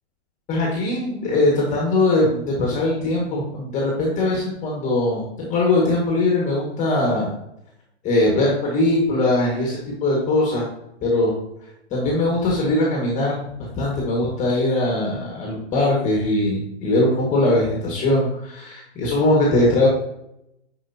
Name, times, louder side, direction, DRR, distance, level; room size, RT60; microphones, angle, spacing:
voice 1, 0.5-7.3 8.0-10.7 11.0-11.3 11.9-19.9, left 2 dB, 20° left, -2 dB, 1.8 m, -21 dB
9.5 x 5.0 x 2.8 m, 0.81 s
hypercardioid pair, 130°, 36 cm